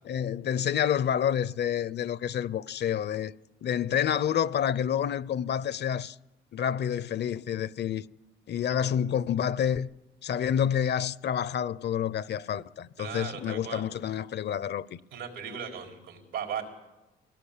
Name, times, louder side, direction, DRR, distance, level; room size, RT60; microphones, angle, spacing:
voice 1, 0.0-3.3 3.6-6.2 6.5-8.1 8.5-9.9 10.2-15.0, left 9 dB, 60° left, 0.7 m, -28 dB
voice 2, 13.0-13.8 15.1-16.6, right 7 dB, 90° right, 4.5 m, -37 dB
23.0 x 18.0 x 8.5 m
cardioid pair, 90°, 20 cm